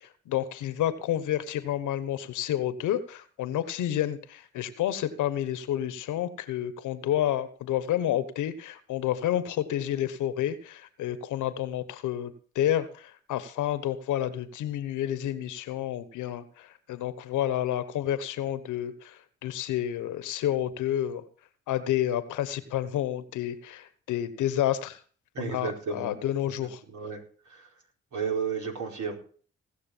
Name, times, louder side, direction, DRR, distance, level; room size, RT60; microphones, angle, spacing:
voice 1, 0.0-21.2 21.7-25.0 25.4-26.8, left 11 dB, 85° left, 14 dB, 1.2 m, -30 dB
voice 2, 25.3-26.1 26.6-27.2 27.5-27.7 28.1-29.2, right 6 dB, 75° right, 1 dB, 4.5 m, -33 dB
18.5 x 6.6 x 7.3 m, 0.43 s
supercardioid pair, 40°, 30 cm